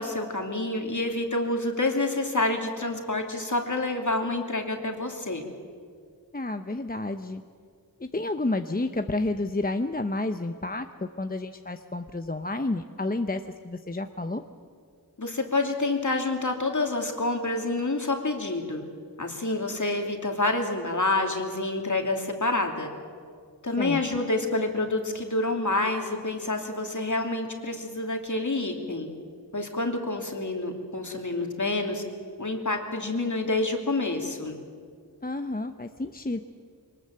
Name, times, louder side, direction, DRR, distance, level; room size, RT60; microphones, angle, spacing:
voice 1, 0.0-5.5 15.2-18.8 19.2-22.9 23.6-29.1 29.5-32.0 32.4-34.6, left 2 dB, 50° left, 4 dB, 2.8 m, -28 dB
voice 2, 6.3-7.4 8.0-14.4 23.8-24.0 35.2-36.4, left 2 dB, 25° left, 8 dB, 0.8 m, -30 dB
22.0 x 20.0 x 7.7 m, 2.2 s
wide cardioid pair, 40°, 38 cm